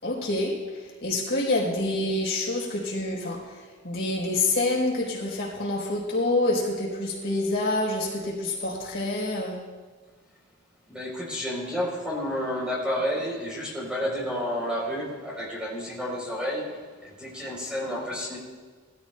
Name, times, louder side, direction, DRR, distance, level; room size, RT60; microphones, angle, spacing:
voice 1, 0.0-9.6, left 2 dB, 55° left, -3 dB, 4.1 m, -27 dB
voice 2, 10.9-18.4, equal, 5° right, -4 dB, 3.8 m, -30 dB
21.0 x 14.5 x 2.3 m, 1.5 s
head